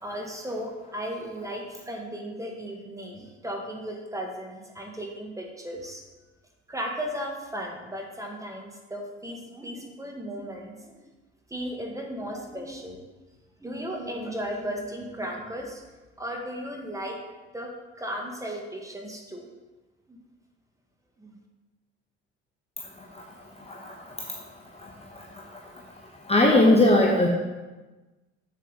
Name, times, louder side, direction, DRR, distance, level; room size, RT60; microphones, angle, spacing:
voice 1, 0.0-6.0 6.7-11.1 11.5-13.0 13.6-15.8 16.2-17.2 17.5-17.7 18.0-19.5 20.1-20.2 21.2-21.4, equal, 10° right, 1 dB, 1.7 m, -35 dB
voice 2, 26.3-27.3, left 1 dB, 15° left, -1 dB, 1.0 m, -18 dB
7.5 x 6.8 x 4.1 m, 1.2 s
figure-of-eight pair, 55°, 36 cm